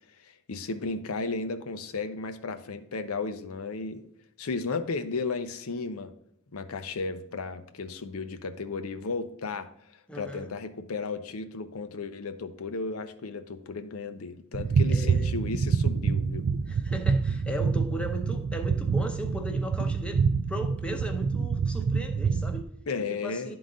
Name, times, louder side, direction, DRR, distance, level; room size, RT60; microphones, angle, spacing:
voice 1, 0.2-4.0 4.4-6.1 6.5-16.5 22.9-23.6, left 4 dB, 90° left, 9 dB, 0.6 m, -34 dB
voice 2, 10.1-10.5 14.9-15.3 16.7-22.7 23.2-23.6, equal, 5° left, 3 dB, 0.7 m, -37 dB
sound 1, 14.5-22.6, right 5 dB, 55° right, 0.3 m, -27 dB
11.0 x 3.9 x 3.8 m, 0.77 s
head